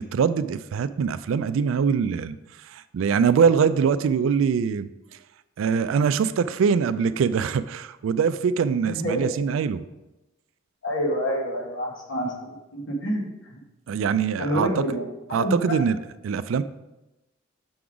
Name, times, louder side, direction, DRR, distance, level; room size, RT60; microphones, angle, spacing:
voice 1, 0.0-2.4 2.7-4.9 5.6-9.8 13.9-14.7 15.3-16.0 16.2-16.6, right 6 dB, 70° right, 14 dB, 0.3 m, -23 dB
voice 2, 8.8-9.3 10.8-12.3 12.7-13.6 14.4-15.7, equal, 65° left, -1 dB, 1.5 m, -27 dB
6.9 x 4.8 x 3.8 m, 1.0 s
head